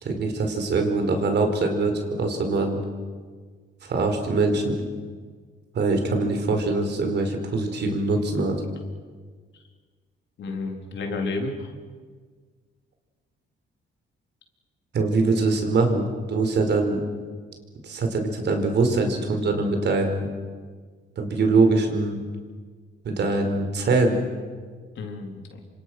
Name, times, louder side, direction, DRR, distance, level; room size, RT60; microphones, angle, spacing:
voice 1, 0.0-2.8 3.8-4.8 5.7-8.5 14.9-17.0 17.8-20.3 21.2-22.2 23.0-24.2, right 3 dB, 60° right, 5 dB, 4.7 m, -23 dB
voice 2, 10.4-11.7 25.0-25.6, left 3 dB, 70° left, 3 dB, 4.1 m, -31 dB
27.5 x 25.5 x 6.2 m, 1.6 s
cardioid pair, 90°, 20 cm